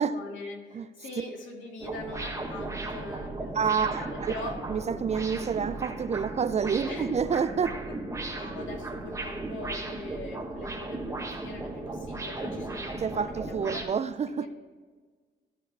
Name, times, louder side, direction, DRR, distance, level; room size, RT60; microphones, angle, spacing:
voice 1, 0.0-4.6 6.8-7.2 8.1-14.5, left 2 dB, 75° left, 2.2 m, -42 dB
sound 1, 1.8-13.8, right 2 dB, 15° right, 1.5 m, -36 dB
voice 2, 3.5-4.3 4.7-7.8 13.0-14.5, right 6 dB, 35° right, 0.4 m, -28 dB
14.0 x 4.8 x 4.6 m
cardioid pair, 90°, 20 cm